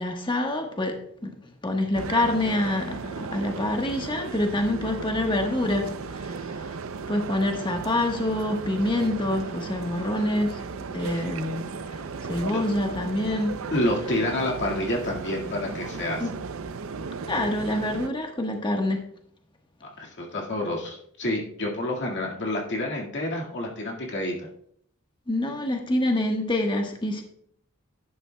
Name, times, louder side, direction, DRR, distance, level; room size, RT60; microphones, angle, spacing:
voice 1, 0.0-1.3 1.6-6.8 7.1-10.6 10.9-13.5 16.2-16.3 17.3-19.0 25.3-27.2, left 1 dB, 25° left, 3 dB, 1.3 m, -26 dB
sound 1, 1.9-18.1, right 4 dB, 70° right, 0.6 m, -35 dB
voice 2, 13.7-16.2 20.0-24.5, left 1 dB, 55° left, -1 dB, 1.9 m, -28 dB
11.5 x 11.0 x 2.3 m, 0.66 s
head